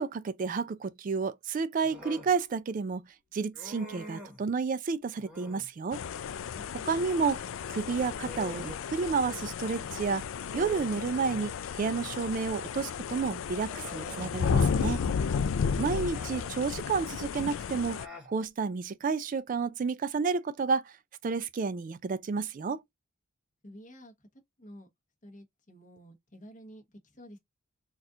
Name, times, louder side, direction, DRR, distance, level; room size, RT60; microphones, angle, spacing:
voice 1, 0.0-3.1 3.3-6.0 6.9-7.4 7.7-10.2 10.5-15.0 15.8-18.0 18.3-20.8 21.2-22.8, right 5 dB, 40° right, 0.3 m, -31 dB
Human voice, 1.8-2.3 3.5-4.4 5.2-5.7 7.6-9.4 9.8-9.9 10.4-11.6 12.8-12.9 13.6-14.4 15.8-16.6 17.7-18.3, left 1 dB, 5° right, 1.1 m, -47 dB
sound 1, 5.9-18.1, left 6 dB, 70° left, 0.3 m, -33 dB
voice 2, 23.6-24.1 24.6-24.9 25.2-27.4, equal, 35° left, 1.1 m, -51 dB
4.2 x 2.4 x 2.5 m
head